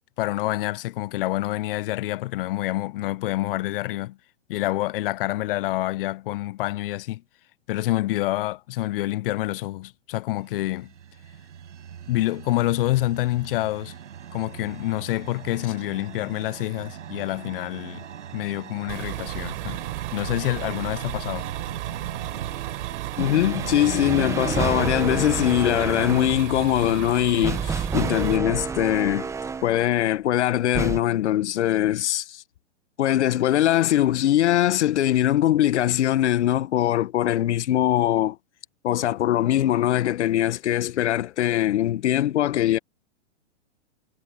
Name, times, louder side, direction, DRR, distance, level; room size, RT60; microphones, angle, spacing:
voice 1, 0.2-4.2 4.5-7.2 7.7-10.9 12.1-13.9 14.3-18.0 18.3-19.8 20.1-21.5, left 17 dB, 50° left, 0.5 m, -27 dB
sound 1, 10.4-25.0, right 8 dB, 80° right, 7.2 m, -39 dB
sound 2, 18.9-28.4, right 24 dB, 45° right, 5.0 m, -34 dB
voice 2, 23.2-29.3 29.6-32.4 33.0-38.4 38.8-42.8, left 12 dB, 70° left, 1.1 m, -22 dB
sound 3, 23.2-29.9 30.7-31.0, right 5 dB, 10° right, 0.8 m, -30 dB
hypercardioid pair, 130°, 36 cm